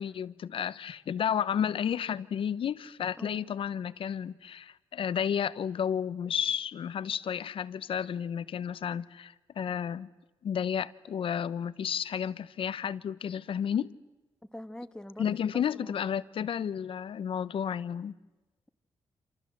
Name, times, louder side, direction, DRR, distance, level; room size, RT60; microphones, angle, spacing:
voice 1, 0.0-10.1 10.4-14.0 15.2-18.1, left 8 dB, 70° left, 0.9 m, -32 dB
voice 2, 3.2-3.5 14.5-16.2, left 1 dB, 10° left, 2.1 m, -45 dB
28.0 x 27.0 x 7.7 m
cardioid pair, 75°, 9 cm